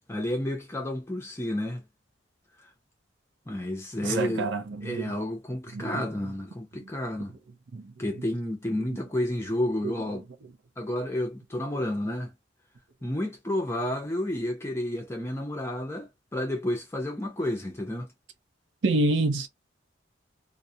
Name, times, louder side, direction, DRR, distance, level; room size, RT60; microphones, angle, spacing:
voice 1, 0.1-1.8 3.5-4.5 4.8-7.3 8.0-10.3 10.8-12.3 13.0-18.1, left 1 dB, 15° left, 0.5 m, -31 dB
voice 2, 4.0-5.1 5.7-6.0 7.7-7.9 9.8-9.9 18.8-19.5, right 2 dB, 75° right, 0.5 m, -27 dB
2.3 x 2.0 x 2.6 m
head